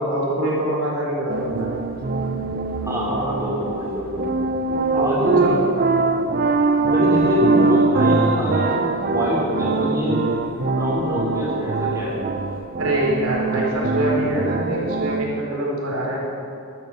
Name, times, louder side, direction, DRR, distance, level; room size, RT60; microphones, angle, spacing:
voice 1, 0.0-1.7 4.9-5.6 12.8-16.3, right 1 dB, 65° right, -3 dB, 4.2 m, -24 dB
sound 1, 1.3-15.2, right 3 dB, 40° right, 0.6 m, -22 dB
voice 2, 2.8-4.2 4.9-5.6 6.8-10.3 10.6-12.1, equal, 15° right, -5 dB, 3.3 m, -25 dB
12.5 x 12.0 x 7.0 m, 2.6 s
head